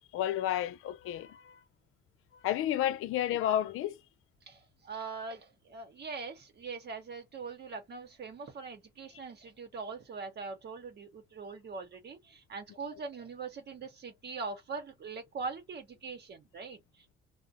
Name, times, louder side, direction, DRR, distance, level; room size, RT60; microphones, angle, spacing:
voice 1, 0.1-1.6 2.4-4.0 12.9-13.0, left 12 dB, 85° left, 0.5 m, -31 dB
voice 2, 4.5-17.1, right 4 dB, 50° right, 0.9 m, -42 dB
2.5 x 2.1 x 2.5 m
cardioid pair, 100°, 21 cm